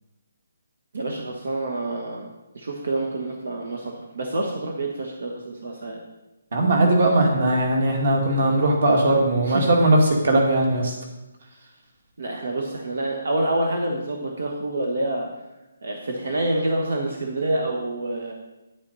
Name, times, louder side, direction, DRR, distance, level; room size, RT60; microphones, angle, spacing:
voice 1, 0.9-2.3 2.5-6.0 9.4-9.7 12.2-15.3 15.8-18.3, right 1 dB, 70° right, 1 dB, 1.5 m, -27 dB
voice 2, 6.5-10.0 10.2-10.9, right 2 dB, 50° right, 1 dB, 2.3 m, -19 dB
9.7 x 8.9 x 4.1 m, 1.0 s
hypercardioid pair, 175°, 0 cm